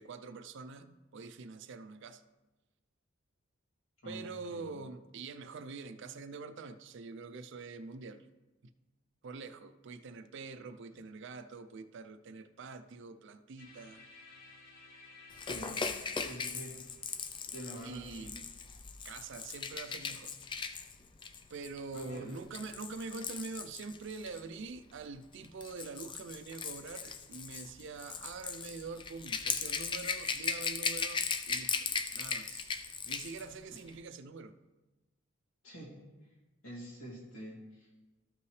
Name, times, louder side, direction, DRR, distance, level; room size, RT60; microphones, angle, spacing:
voice 1, 0.0-2.2 4.0-8.3 9.2-14.1 17.8-18.4 19.0-20.3 21.5-32.7 33.0-34.5, right 4 dB, 55° right, 0.4 m, -45 dB
voice 2, 4.0-4.7 15.3-16.8 17.5-18.4 21.9-22.3 35.6-36.0 36.6-38.0, right 1 dB, 75° left, 2.8 m, -46 dB
sound 1, 13.6-19.5, left 3 dB, 45° left, 1.0 m, -58 dB
Rattle / Rattle (instrument), 15.4-24.4 25.3-33.4 33.7-33.9, left 5 dB, 20° left, 0.3 m, -38 dB
13.0 x 5.7 x 3.2 m
head